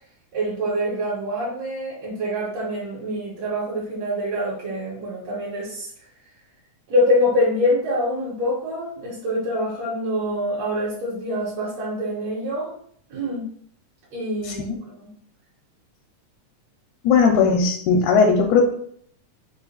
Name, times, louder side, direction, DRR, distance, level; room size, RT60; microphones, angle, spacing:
voice 1, 0.3-5.9 6.9-12.7 13.1-13.4 14.1-15.1, left 1 dB, 65° right, -7 dB, 2.0 m, -25 dB
voice 2, 14.5-14.8 17.0-18.7, left 5 dB, 85° left, 2 dB, 2.0 m, -18 dB
4.9 x 2.4 x 3.9 m, 0.62 s
omnidirectional pair, 3.5 m